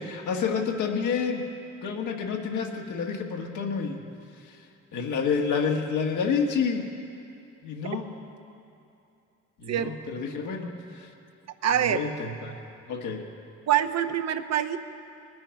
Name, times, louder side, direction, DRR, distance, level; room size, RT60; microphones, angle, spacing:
voice 1, 0.0-1.4 1.8-4.0 4.9-6.9 7.6-8.1 9.6-10.7 10.9-11.1 11.8-12.6 12.9-13.2, left 5 dB, 75° left, 2 dB, 1.6 m, -29 dB
voice 2, 11.6-12.1 13.7-14.8, right 10 dB, 60° right, 8 dB, 0.8 m, -25 dB
20.0 x 9.7 x 5.9 m, 2.6 s
cardioid pair, 90°, 30 cm